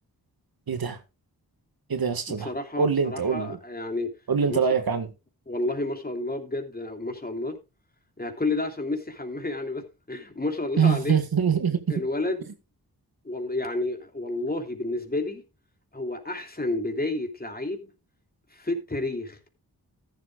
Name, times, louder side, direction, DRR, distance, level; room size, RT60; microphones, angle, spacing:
voice 1, 0.7-1.0 1.9-2.5 2.8-3.6 4.3-5.1 10.8-12.0, right 6 dB, 70° right, 1.8 m, -24 dB
voice 2, 2.4-4.1 4.5-4.6 5.5-7.6 8.2-11.2 11.9-12.4 13.2-15.4 15.9-17.9 18.5-19.4, left 2 dB, 25° left, 3.1 m, -30 dB
14.0 x 11.5 x 2.5 m
cardioid pair, 55°, 38 cm